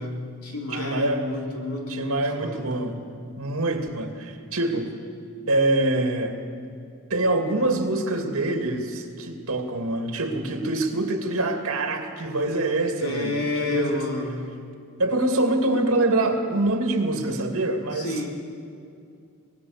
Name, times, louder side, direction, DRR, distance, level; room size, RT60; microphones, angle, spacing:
voice 1, 0.0-2.9 13.0-14.4 17.9-18.3, left 2 dB, 80° left, 0 dB, 3.5 m, -30 dB
voice 2, 0.7-1.2 1.9-3.0 3.4-4.9 5.5-6.3 7.1-14.0 15.0-18.3, right 2 dB, 65° right, 4 dB, 2.5 m, -25 dB
23.5 x 19.5 x 6.6 m, 2.4 s
head